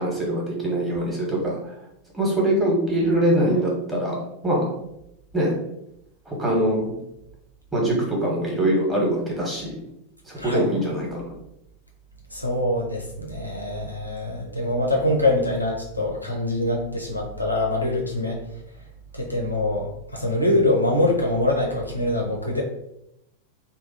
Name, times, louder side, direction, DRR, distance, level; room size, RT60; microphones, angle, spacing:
voice 1, 0.0-1.6 2.1-4.2 4.4-4.6 5.3-5.5 6.3-6.9 7.7-9.8 10.3-11.2, right 1 dB, 10° right, -3 dB, 1.4 m, -23 dB
voice 2, 12.3-18.4 19.1-22.6, left 1 dB, 85° left, 0 dB, 0.9 m, -24 dB
3.4 x 2.3 x 4.2 m, 0.80 s
figure-of-eight pair, 90°, 0 cm